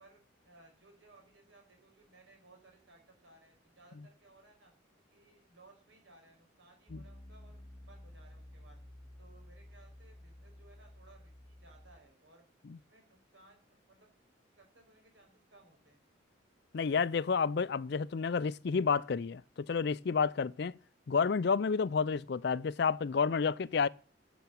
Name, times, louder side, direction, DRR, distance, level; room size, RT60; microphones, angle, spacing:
voice 1, 0.0-4.7 5.1-8.8 9.2-12.4 12.7-14.1 14.6-16.0, right 2 dB, 70° right, 5.2 m, -62 dB
Piano, 6.9-12.0, left 1 dB, 20° left, 0.7 m, -53 dB
voice 2, 16.7-20.7 21.1-23.9, left 5 dB, 55° left, 0.4 m, -30 dB
10.5 x 7.1 x 7.0 m
head